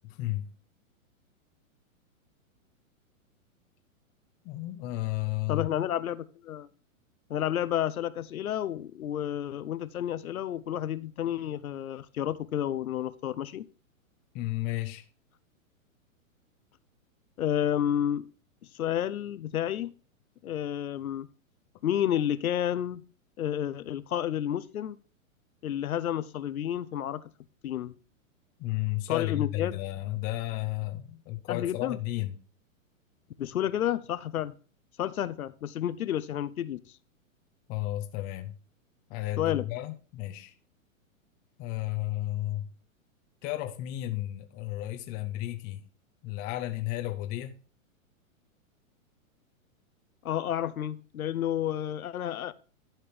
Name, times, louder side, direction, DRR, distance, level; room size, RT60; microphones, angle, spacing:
voice 1, 0.0-0.5 4.4-5.7 14.3-15.1 28.6-32.4 37.7-38.5 39.1-40.5 41.6-42.7 43.4-45.8 46.2-47.6, left 16 dB, 20° left, 0.5 m, -33 dB
voice 2, 5.5-6.7 7.3-13.6 17.4-18.3 18.7-19.9 20.4-21.3 21.8-23.0 23.4-25.0 25.6-27.2 27.6-27.9 29.1-29.7 31.5-32.0 33.4-34.5 35.0-36.8 39.4-39.6 50.2-52.5, left 11 dB, 90° left, 0.8 m, -30 dB
12.0 x 4.5 x 5.1 m
hypercardioid pair, 135°, 41 cm